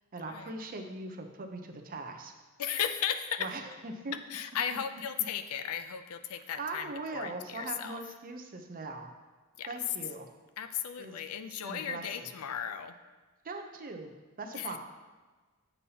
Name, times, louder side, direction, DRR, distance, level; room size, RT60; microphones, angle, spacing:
voice 1, 0.1-2.3 3.4-4.1 6.3-9.1 9.7-10.3 11.0-11.1 11.5-12.3 13.4-14.1 14.4-14.8, right 3 dB, 40° right, 4 dB, 0.6 m, -40 dB
voice 2, 2.6-3.4 4.3-8.0 9.6-9.7 10.6-12.9 14.5-14.7, left 8 dB, 85° left, 9 dB, 0.4 m, -36 dB
8.1 x 5.5 x 2.8 m, 1.3 s
head